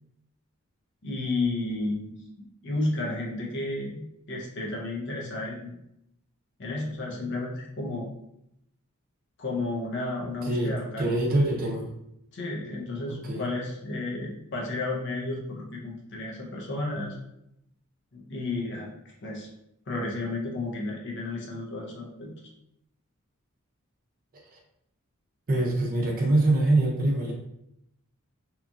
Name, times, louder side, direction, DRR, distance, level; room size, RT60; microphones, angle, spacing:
voice 1, 1.0-2.1 2.6-5.8 6.6-8.1 9.4-11.1 12.3-17.2 18.1-19.5 19.9-22.3, left 2 dB, 55° left, -1 dB, 0.6 m, -32 dB
voice 2, 10.4-11.9 13.1-13.5 24.5-24.6 25.5-27.3, right 2 dB, 45° right, -1 dB, 0.6 m, -24 dB
2.9 x 2.3 x 2.5 m, 0.78 s
head